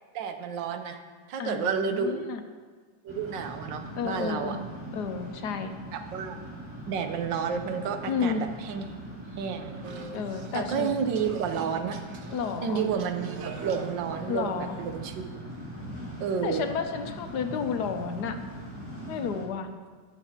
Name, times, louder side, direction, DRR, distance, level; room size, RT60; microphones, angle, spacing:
voice 1, 0.1-1.0 1.3-2.3 3.0-4.6 5.9-6.4 6.9-8.9 9.3-9.8 10.5-12.0 12.6-15.4 16.2-16.6, right 6 dB, 90° right, 6 dB, 1.5 m, -31 dB
voice 2, 1.4-2.4 4.0-4.6 4.9-5.7 8.1-8.4 10.1-10.9 12.3-12.9 14.3-14.8 16.4-18.4 19.1-19.7, left 6 dB, 70° left, 7 dB, 1.2 m, -31 dB
sound 1, 3.1-19.5, right 1 dB, 5° right, 1.8 m, -41 dB
sound 2, 9.8-15.1, right 4 dB, 60° right, 1.0 m, -43 dB
20.0 x 6.9 x 2.9 m, 1.5 s
omnidirectional pair, 1.9 m